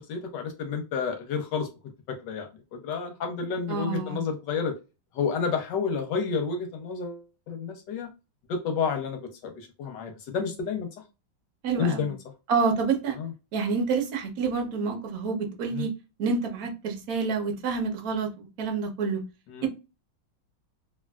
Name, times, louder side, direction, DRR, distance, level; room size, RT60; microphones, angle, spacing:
voice 1, 0.1-1.7 2.1-4.7 5.1-7.2 7.5-8.1 8.5-10.9 11.8-12.2 13.2-13.3 15.7-15.9 19.5-19.6, left 5 dB, 70° left, 1.1 m, -30 dB
voice 2, 3.7-4.2 11.6-12.1 12.5-13.2 13.5-15.9 16.2-18.3 18.6-19.2 19.6-19.7, right 5 dB, 60° right, 1.0 m, -28 dB
3.3 x 2.4 x 2.2 m
omnidirectional pair, 2.4 m